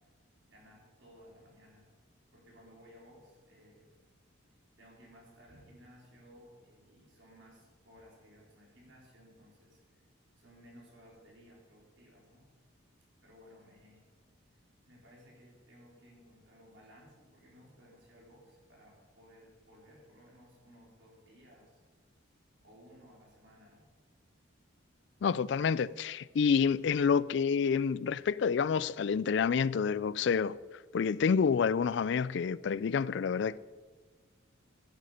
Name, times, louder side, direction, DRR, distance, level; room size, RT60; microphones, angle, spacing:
voice 1, 0.5-1.9 2.3-3.9 4.8-10.0 10.4-12.5 13.2-14.4 14.8-21.8 22.6-23.9, equal, 60° right, 4.3 m, -58 dB
voice 2, 25.2-30.6 30.9-33.6, left 6 dB, 55° left, 0.3 m, -28 dB
14.5 x 11.0 x 5.1 m
head